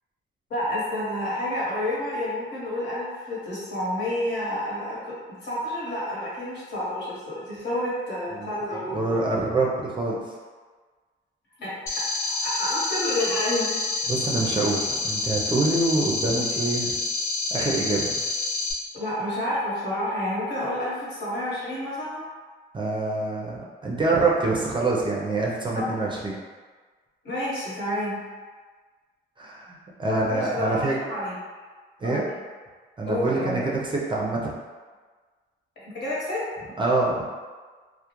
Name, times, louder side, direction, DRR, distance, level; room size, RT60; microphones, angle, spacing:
voice 1, 0.5-5.1 5.4-9.2 11.6-11.7 12.4-13.7 18.9-22.2 25.8-25.9 27.2-28.2 30.1-31.3 32.0-32.3 33.1-33.6 35.8-36.4, left 1 dB, 60° left, -8 dB, 1.1 m, -29 dB
voice 2, 8.3-10.2 14.1-17.0 17.5-18.2 22.7-26.4 29.4-31.0 32.0-32.2 33.0-34.5 36.8-37.2, right 2 dB, 25° right, -4 dB, 0.4 m, -25 dB
sound 1, 11.9-18.7, left 3 dB, 75° left, 0.7 m, -28 dB
2.3 x 2.1 x 2.9 m, 1.5 s
cardioid pair, 90°, 20 cm